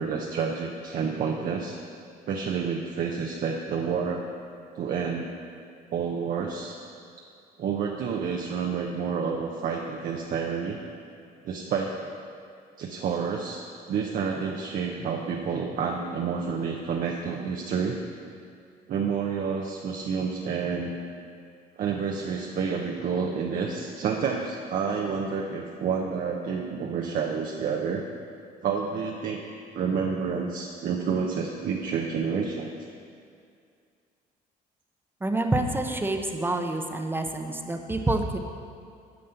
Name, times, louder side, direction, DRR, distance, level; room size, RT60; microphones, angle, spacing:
voice 1, 0.0-1.8 2.3-4.3 4.7-5.3 5.9-6.8 7.6-10.8 11.4-12.2 12.8-18.0 18.9-21.0 21.8-28.1 28.6-29.4 29.7-32.7, right 6 dB, 55° right, 0 dB, 0.8 m, -29 dB
voice 2, 35.2-38.4, right 2 dB, 10° right, 5 dB, 0.8 m, -27 dB
9.7 x 5.4 x 7.9 m, 2.3 s
cardioid pair, 110°, 17 cm